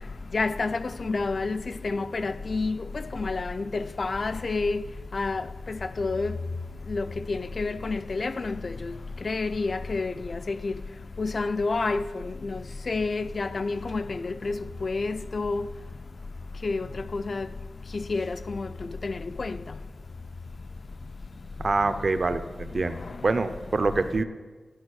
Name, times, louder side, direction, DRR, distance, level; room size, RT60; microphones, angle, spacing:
voice 1, 0.3-2.8 3.1-4.8 5.1-6.3 6.9-8.9 9.2-10.7 11.2-12.6 12.9-15.6 16.6-16.9 17.1-17.5 17.9-18.7 19.0-19.5, left 3 dB, 40° left, 0.4 m, -29 dB
voice 2, 21.6-23.0 23.2-24.2, right 3 dB, 40° right, 0.5 m, -25 dB
12.0 x 5.2 x 6.4 m
wide cardioid pair, 155°, 0 cm